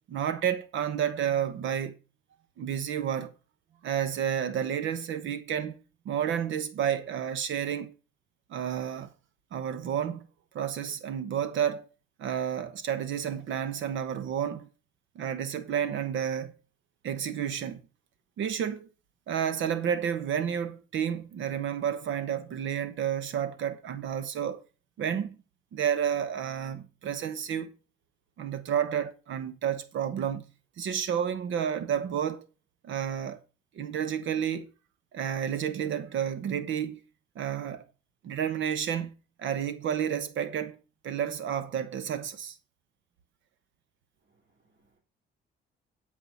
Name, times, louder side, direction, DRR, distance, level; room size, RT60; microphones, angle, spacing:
voice 1, 0.1-1.9 2.6-3.3 3.8-5.8 6.0-7.9 8.5-9.1 9.5-10.2 10.5-11.9 12.2-14.7 15.1-16.5 17.0-17.8 18.4-18.9 19.3-24.6 25.0-25.4 25.7-27.7 28.4-30.5 30.8-32.4 32.8-33.4 33.7-34.7 35.1-37.0 37.4-37.8 38.2-39.1 39.4-40.8 41.0-42.6, right 9 dB, 75° right, 1.0 m, -30 dB
voice 2, 44.2-45.0, right 3 dB, 40° right, 3.3 m, -70 dB
10.0 x 4.7 x 6.9 m
cardioid pair, 90°, 20 cm